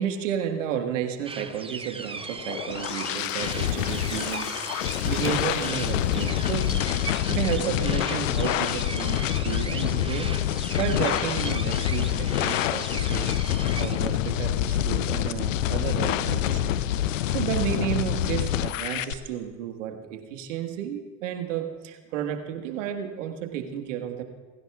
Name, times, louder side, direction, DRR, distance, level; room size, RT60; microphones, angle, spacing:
voice 1, 0.0-13.4 13.8-24.2, right 9 dB, 70° right, 6 dB, 1.6 m, -32 dB
sound 1, 1.2-14.0, right 4 dB, 15° right, 0.9 m, -39 dB
sound 2, 2.2-19.1, left 11 dB, 75° left, 0.7 m, -26 dB
sound 3, 2.8-8.5 8.9-9.0 9.2-9.3, left 6 dB, 50° left, 2.4 m, -40 dB
30.0 x 15.5 x 2.4 m, 1.4 s
figure-of-eight pair, 65°, 38 cm